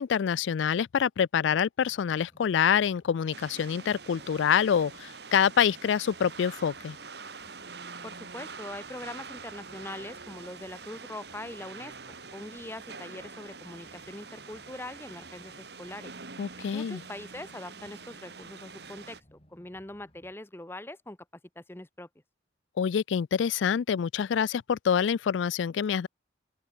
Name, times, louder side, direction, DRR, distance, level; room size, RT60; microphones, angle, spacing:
voice 1, 0.0-7.0 16.4-17.0 22.8-26.1, left 7 dB, 85° left, 0.4 m, -26 dB
sound 1, 1.8-20.3, equal, 30° left, 4.8 m, -62 dB
sound 2, 3.3-19.2, right 4 dB, 60° right, 2.4 m, -45 dB
voice 2, 8.0-16.1 16.7-21.2 21.6-22.1, left 1 dB, 10° left, 0.8 m, -42 dB
open air
head